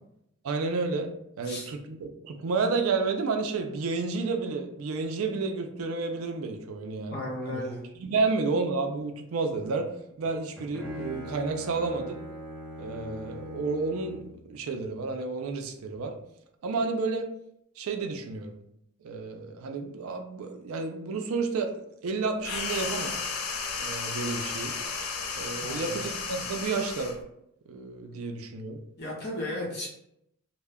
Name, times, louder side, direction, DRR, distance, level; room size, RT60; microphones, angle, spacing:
voice 1, 0.4-1.1 1.4-7.6 8.0-9.9 10.2-12.2 12.8-16.2 16.6-17.3 17.8-18.6 19.0-23.1 23.8-24.8 25.4-27.2 27.7-28.8, right 4 dB, 75° right, 5 dB, 0.4 m, -31 dB
voice 2, 6.8-7.8 25.6-26.0 29.0-29.9, left 1 dB, 50° left, -2 dB, 0.9 m, -35 dB
Bowed string instrument, 10.2-14.4, equal, 5° left, 0.6 m, -41 dB
sound 1, 22.4-27.2, left 5 dB, 80° left, 0.4 m, -33 dB
2.2 x 2.1 x 3.4 m, 0.76 s
head